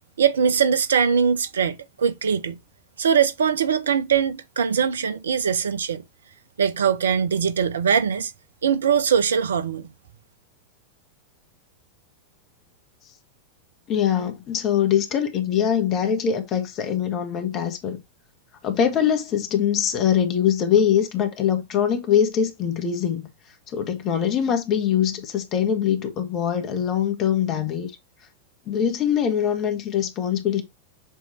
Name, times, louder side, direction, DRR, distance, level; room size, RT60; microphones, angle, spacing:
voice 1, 0.2-2.6 3.0-6.0 6.6-8.3 8.6-9.9, right 7 dB, 65° right, 0.7 m, -21 dB
voice 2, 13.9-18.0 18.6-23.3 23.7-27.9 28.7-30.6, left 9 dB, 35° left, 1.6 m, -23 dB
7.6 x 3.2 x 4.5 m
figure-of-eight pair, 90°, 0 cm